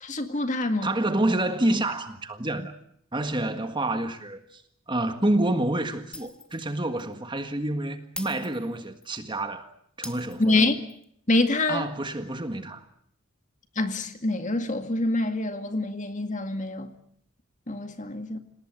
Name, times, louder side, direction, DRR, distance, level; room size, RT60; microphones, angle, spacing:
voice 1, 0.0-0.9 10.4-10.8 11.3-11.9 13.8-16.9 17.7-18.4, left 2 dB, 35° left, 2.1 m, -26 dB
voice 2, 0.8-2.7 3.1-4.6 4.9-9.7 10.0-10.6 11.7-12.8, right 1 dB, 20° right, 1.7 m, -28 dB
Shatter, 6.1-6.7 7.0-7.1 8.2-9.2 10.0-11.0, left 1 dB, 5° left, 1.4 m, -42 dB
27.5 x 18.5 x 9.1 m
head